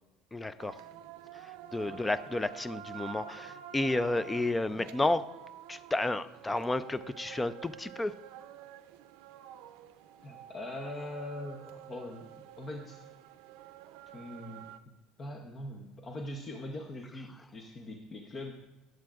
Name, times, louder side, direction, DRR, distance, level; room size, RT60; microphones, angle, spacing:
voice 1, 0.3-0.8 1.3-5.2 5.7-8.1, left 2 dB, 10° left, 14 dB, 0.3 m, -31 dB
sound 1, 0.6-14.8, right 10 dB, 80° right, 0.5 m, -49 dB
voice 2, 10.2-13.2 14.1-14.6 15.2-18.5, left 1 dB, 25° left, 3 dB, 0.7 m, -42 dB
19.0 x 7.7 x 2.4 m, 1.0 s
cardioid pair, 160°, 0 cm